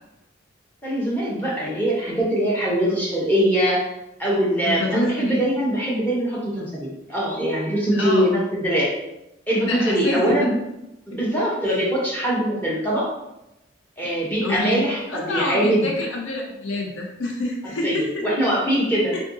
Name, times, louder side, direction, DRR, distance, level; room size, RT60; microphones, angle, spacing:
voice 1, 0.8-3.8 4.2-8.9 9.5-10.5 11.1-13.1 14.0-15.9 17.8-19.1, equal, 10° left, -6 dB, 0.7 m, -22 dB
voice 2, 4.6-5.4 7.9-8.3 9.7-10.4 11.7-11.8 14.4-18.2 19.1-19.2, left 2 dB, 70° left, 0 dB, 0.6 m, -27 dB
3.6 x 2.5 x 2.5 m, 0.91 s
head